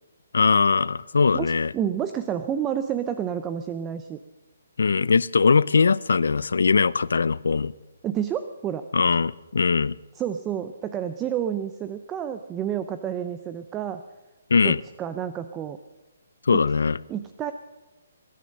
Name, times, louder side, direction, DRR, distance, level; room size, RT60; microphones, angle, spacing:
voice 1, 0.3-1.7 4.8-7.7 8.9-9.9 14.5-14.8 16.5-17.0, left 5 dB, 85° left, 0.5 m, -21 dB
voice 2, 1.3-4.2 8.0-8.8 10.1-14.0 14.6-15.8 16.5-16.6 17.1-17.5, right 9 dB, 15° right, 0.5 m, -29 dB
21.0 x 10.0 x 6.4 m
hypercardioid pair, 165°, 0 cm